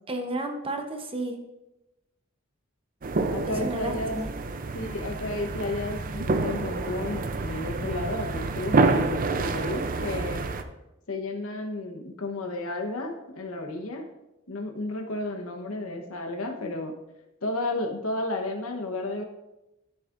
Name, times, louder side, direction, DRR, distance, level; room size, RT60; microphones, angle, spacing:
voice 1, 0.1-1.4 3.5-4.3, right 2 dB, 25° right, 4 dB, 0.9 m, -32 dB
sound 1, 3.0-10.6, right 3 dB, 40° right, 0.5 m, -28 dB
voice 2, 3.3-4.2 4.7-10.4 11.1-14.1 14.5-16.9 17.4-19.2, left 2 dB, 90° left, 3 dB, 1.2 m, -32 dB
12.5 x 7.3 x 2.6 m, 0.95 s
head